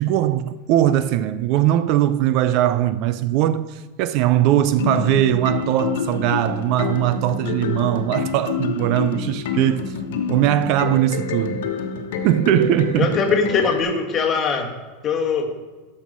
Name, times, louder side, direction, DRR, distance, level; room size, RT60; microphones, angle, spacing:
voice 1, 0.0-9.9 10.3-11.7 12.2-13.2, right 12 dB, 45° right, 0.4 m, -20 dB
sound 1, 4.7-13.8, left 6 dB, 80° left, 1.2 m, -27 dB
voice 2, 13.0-14.7 15.0-15.5, left 5 dB, 25° left, 1.3 m, -21 dB
13.0 x 5.5 x 6.2 m
supercardioid pair, 165°, 0 cm